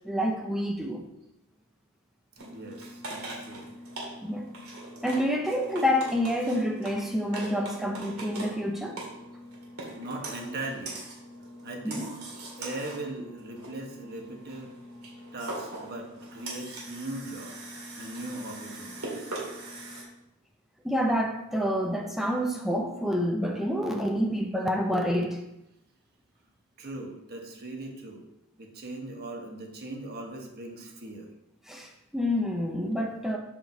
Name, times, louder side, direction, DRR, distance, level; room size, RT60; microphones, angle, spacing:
voice 1, 0.0-1.1 4.2-4.5 5.0-9.0 11.8-12.1 20.8-25.4 31.7-33.4, equal, ahead, 1 dB, 0.6 m, -28 dB
voice 2, 2.4-3.7 9.9-11.0 11.6-14.7 15.3-19.3 26.8-28.3 28.6-31.3, right 2 dB, 45° right, 2 dB, 1.2 m, -39 dB
sound 1, 2.4-20.0, right 1 dB, 75° right, 2.2 m, -41 dB
7.6 x 4.9 x 4.0 m, 0.88 s
head